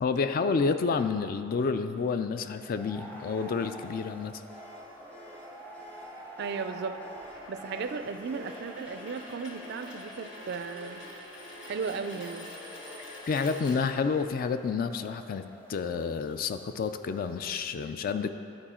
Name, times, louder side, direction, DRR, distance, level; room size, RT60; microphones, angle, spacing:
voice 1, 0.0-4.4 13.3-15.4 15.7-18.3, left 5 dB, 45° left, 9 dB, 0.3 m, -29 dB
sound 1, 2.6-17.6, right 1 dB, 10° left, 0.6 m, -48 dB
sound 2, 3.8-14.4, left 2 dB, 60° left, 1.1 m, -48 dB
sound 3, 4.5-14.4, equal, 30° left, 1.1 m, -52 dB
voice 2, 6.4-7.0 7.5-11.0 11.7-12.5, right 5 dB, 55° right, 9 dB, 0.4 m, -35 dB
11.5 x 4.6 x 4.3 m, 2.5 s
head